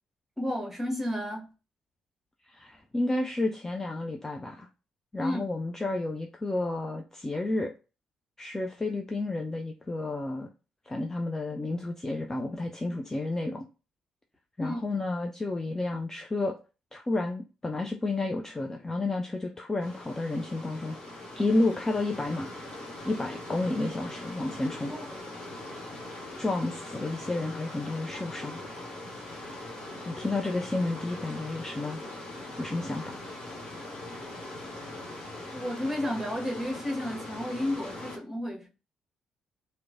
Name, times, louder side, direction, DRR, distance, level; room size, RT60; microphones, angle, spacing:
voice 1, 0.4-1.5 5.2-5.4 12.8-13.0 14.6-14.8 24.9-25.0 35.5-38.7, left 1 dB, 5° right, 1.1 m, -32 dB
voice 2, 2.5-4.7 5.1-7.7 8.4-10.5 10.9-13.6 14.6-16.6 16.9-22.5 23.0-24.9 26.4-28.6 30.1-32.0 32.6-33.2, left 2 dB, 20° left, 0.3 m, -31 dB
sound 1, 19.8-38.2, left 1 dB, 50° left, 0.9 m, -41 dB
2.9 x 2.1 x 2.4 m
figure-of-eight pair, 45°, 3 cm